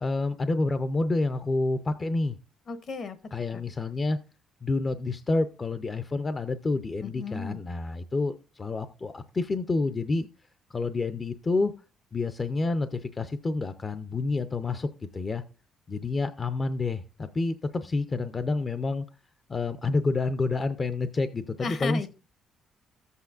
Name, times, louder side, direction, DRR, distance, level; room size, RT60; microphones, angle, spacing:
voice 1, 0.0-2.4 3.3-4.2 4.6-10.3 10.7-11.7 12.1-14.9 15.1-15.4 15.9-19.1 19.5-22.1, left 3 dB, 25° left, 11 dB, 0.5 m, -28 dB
voice 2, 2.7-3.2 3.5-3.6 7.0-7.6 21.6-22.1, left 4 dB, 45° left, 12 dB, 0.9 m, -34 dB
14.0 x 8.2 x 2.4 m, 0.31 s
cardioid pair, 135°, 0 cm